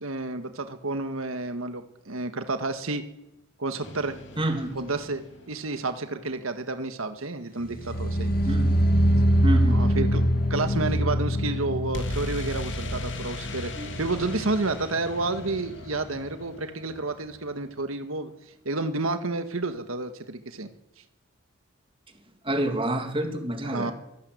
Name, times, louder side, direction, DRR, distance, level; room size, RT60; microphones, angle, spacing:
voice 1, 0.0-3.0 3.6-4.2 4.8-8.3 9.7-10.2 10.5-13.7 14.0-18.3 18.7-20.7 23.6-23.9, right 3 dB, 85° right, 9 dB, 1.7 m, -30 dB
sound 1, 3.8-5.8 11.9-17.7, left 2 dB, 60° left, 3.3 m, -39 dB
voice 2, 4.4-4.8 8.4-8.9 9.4-9.8 13.7-13.9 22.4-23.9, right 1 dB, 25° right, 6 dB, 2.7 m, -28 dB
sound 2, 7.6-14.8 15.0-15.5 15.8-15.9, equal, 45° left, 2.2 m, -24 dB
24.0 x 16.0 x 8.1 m, 0.87 s
head